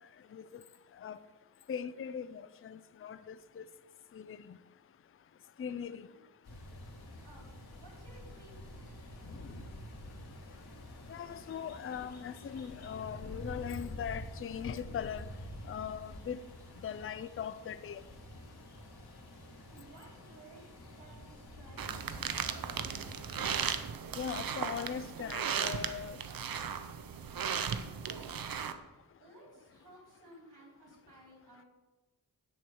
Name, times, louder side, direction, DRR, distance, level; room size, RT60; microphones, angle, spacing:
voice 1, 1.7-3.6 4.1-4.4 5.6-6.1 9.3-9.6 11.1-15.3 15.7-16.4 16.8-18.0 24.2-26.2, left 7 dB, 35° left, 14 dB, 0.4 m, -40 dB
sound 1, 6.4-23.8, left 1 dB, 75° left, 3.4 m, -48 dB
voice 2, 7.2-9.2 19.7-22.8 27.7-28.6 29.2-31.7, right 2 dB, 80° right, -2 dB, 3.4 m, -57 dB
sound 2, 21.8-28.7, right 7 dB, 60° right, 0.7 m, -36 dB
9.9 x 4.5 x 7.8 m, 1.2 s
wide cardioid pair, 95°, 39 cm